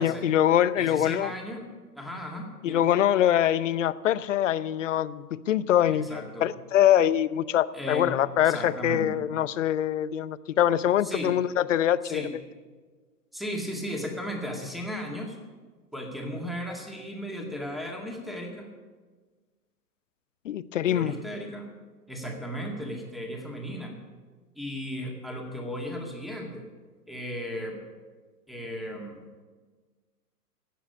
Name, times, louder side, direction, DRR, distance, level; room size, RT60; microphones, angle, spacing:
voice 1, 0.0-1.3 2.6-12.2 20.4-21.1, left 11 dB, 50° left, 17 dB, 0.7 m, -24 dB
voice 2, 0.8-1.7 2.0-2.9 5.9-6.5 7.7-8.1 8.4-9.2 11.0-11.3 12.0-12.3 13.3-15.4 15.9-18.7 20.9-21.7 22.1-24.0 24.6-26.7 27.1-27.8 28.5-29.2, equal, ahead, 1 dB, 2.1 m, -35 dB
16.5 x 7.2 x 9.8 m, 1.4 s
figure-of-eight pair, 120°, 48 cm